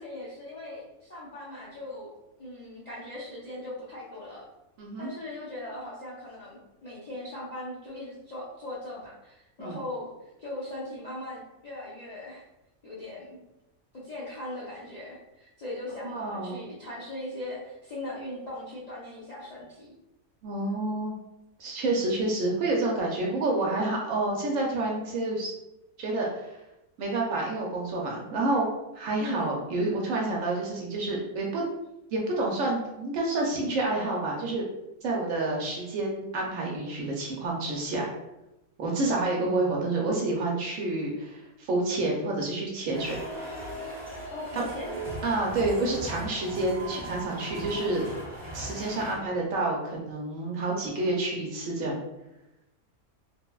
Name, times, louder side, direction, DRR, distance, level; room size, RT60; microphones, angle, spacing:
voice 1, 0.0-2.1 2.4-4.4 5.0-10.1 10.4-12.4 12.8-13.4 14.0-19.9 29.2-29.6 44.3-45.0, left 1 dB, 75° left, -8 dB, 0.3 m, -39 dB
voice 2, 4.8-5.1 9.6-9.8 16.1-16.6 20.4-21.1 21.6-25.5 26.0-26.6 27.0-28.7 28.9-31.6 32.1-34.6 35.0-38.1 38.8-43.2 44.5-44.7 45.2-48.0 48.5-52.0, right 2 dB, 70° right, -2 dB, 0.9 m, -29 dB
sound 1, 42.9-49.3, right 1 dB, 45° right, 1.0 m, -38 dB
3.1 x 2.0 x 2.2 m, 0.92 s
omnidirectional pair, 1.5 m